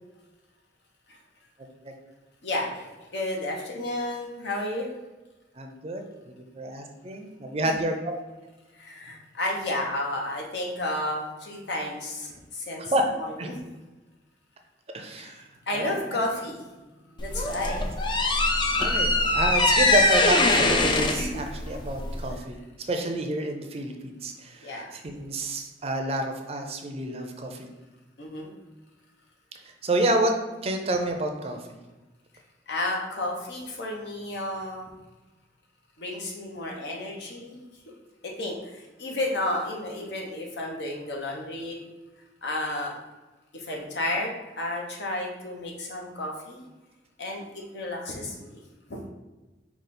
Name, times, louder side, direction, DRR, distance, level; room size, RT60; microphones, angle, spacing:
voice 1, 2.4-4.9 7.6-7.8 8.8-12.9 13.2-13.6 15.2-15.4 15.7-16.6 17.2-17.9 21.1-21.4 24.6-24.9 28.2-28.5 32.7-34.8 36.0-37.6 37.9-38.0 38.2-41.8 42.4-42.9 43.5-46.7 47.2-48.6 48.9-49.0, left 1 dB, 75° left, 0 dB, 0.9 m, -32 dB
voice 2, 5.6-6.0 6.4-8.1 12.8-13.0 13.4-13.5 14.9-15.4 15.7-16.0 17.7-17.9 18.8-22.6 22.9-27.7 29.8-30.3 30.6-31.8, right 1 dB, 35° right, 4 dB, 0.5 m, -29 dB
sound 1, 17.2-22.4, left 2 dB, 25° left, 0.4 m, -22 dB
5.0 x 2.4 x 4.1 m, 1.1 s
head